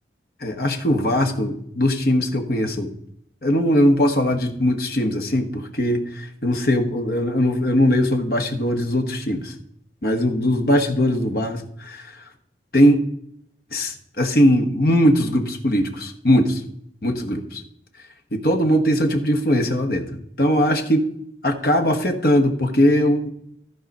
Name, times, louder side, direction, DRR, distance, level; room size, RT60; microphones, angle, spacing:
voice 1, 0.4-2.9 3.4-9.5 10.0-12.1 12.7-13.0 13.7-16.6 17.0-17.6 18.3-21.1 21.4-23.3, equal, 55° left, 6 dB, 1.2 m, -20 dB
14.0 x 4.8 x 5.3 m, 0.70 s
head